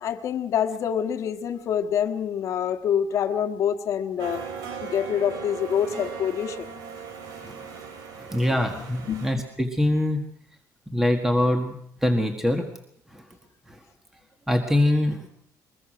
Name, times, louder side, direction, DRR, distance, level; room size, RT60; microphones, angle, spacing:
voice 1, 0.0-4.4 4.8-6.7 8.4-8.5 9.1-9.3, left 8 dB, 50° left, 7 dB, 1.6 m, -26 dB
sound 1, 4.2-9.3, right 6 dB, 65° right, 3.4 m, -38 dB
voice 2, 8.2-10.2 10.9-11.7 12.0-12.7 13.1-13.2 14.5-15.3, left 1 dB, 5° right, 4 dB, 1.6 m, -23 dB
23.0 x 21.0 x 6.2 m, 0.66 s
cardioid pair, 175°, 7 cm